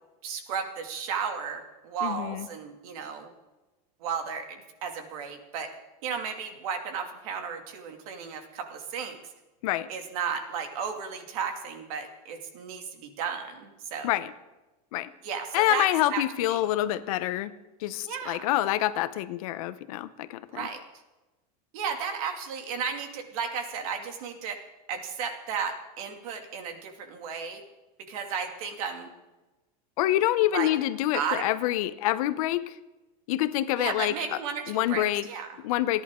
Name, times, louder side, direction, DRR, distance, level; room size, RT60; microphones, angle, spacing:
voice 1, 0.2-3.3 4.0-5.7 6.0-9.2 9.9-14.2 15.2-16.6 18.0-18.5 20.5-20.8 21.7-24.6 24.9-27.6 28.1-29.1 30.5-30.7 31.1-31.5 33.8-35.6, right 6 dB, 65° right, 5 dB, 2.5 m, -34 dB
voice 2, 2.0-2.5 9.6-9.9 14.0-14.3 14.9-15.1 15.5-17.5 17.8-20.7 30.0-32.7 33.3-34.4 34.7-35.3 35.6-36.0, left 14 dB, 65° left, 13 dB, 0.9 m, -27 dB
29.0 x 11.0 x 3.8 m, 1.1 s
supercardioid pair, 165°, 20 cm